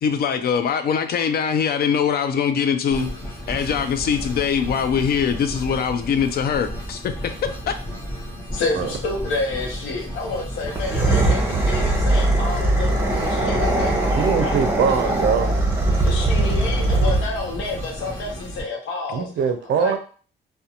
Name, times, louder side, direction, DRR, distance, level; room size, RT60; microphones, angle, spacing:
voice 1, 0.0-3.1 3.5-7.1 7.7-7.8, left 7 dB, 50° left, 0.4 m, -22 dB
sound 1, 2.9-18.6, equal, 15° left, 0.9 m, -34 dB
voice 2, 8.5-14.6 16.0-19.3 19.8-20.0, left 3 dB, 85° left, 0.7 m, -29 dB
sound 2, 10.7-17.5, right 2 dB, 10° right, 0.7 m, -20 dB
voice 3, 14.1-15.5 19.1-20.0, right 6 dB, 60° right, 0.5 m, -22 dB
2.4 x 2.2 x 2.8 m
cardioid pair, 90°, 20 cm